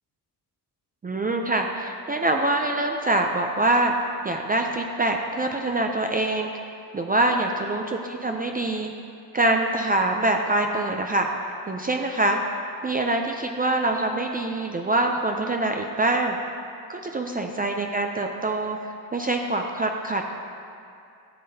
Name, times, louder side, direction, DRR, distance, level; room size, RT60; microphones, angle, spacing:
voice 1, 1.0-3.9 4.2-6.5 6.9-8.9 9.3-11.3 11.7-12.4 12.8-16.4 17.0-20.3, right 2 dB, 20° right, 3 dB, 0.4 m, -24 dB
12.5 x 7.5 x 2.8 m, 2.5 s
cardioid pair, 95°, 42 cm